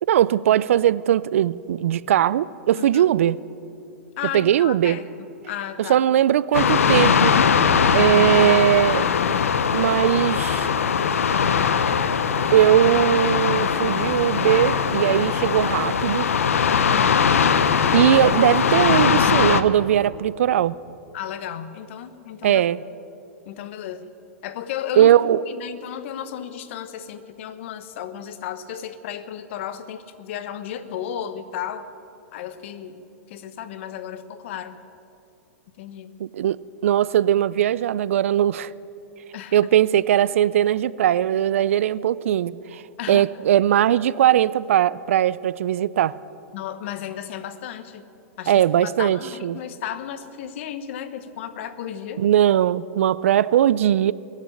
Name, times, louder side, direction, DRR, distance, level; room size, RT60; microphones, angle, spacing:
voice 1, 0.1-3.4 4.3-5.0 5.9-7.3 7.9-9.1 9.7-10.7 12.5-16.3 17.9-20.7 22.4-22.8 25.0-25.4 36.2-36.6 36.8-38.7 39.5-42.8 43.1-46.1 48.5-49.6 52.2-54.1, right 11 dB, 75° right, 19 dB, 0.4 m, -19 dB
voice 2, 2.7-3.0 4.2-6.0 16.7-17.2 21.1-22.6 23.4-24.1 24.4-25.1 25.5-31.9 32.3-33.0 33.3-34.8 35.8-36.1 39.3-39.6 43.0-43.2 46.5-48.1 48.4-52.2, left 10 dB, 60° left, 12 dB, 1.1 m, -34 dB
sound 1, 6.5-19.6, left 6 dB, 85° left, 0.8 m, -20 dB
22.0 x 7.4 x 8.5 m, 2.7 s
hypercardioid pair, 115°, 7 cm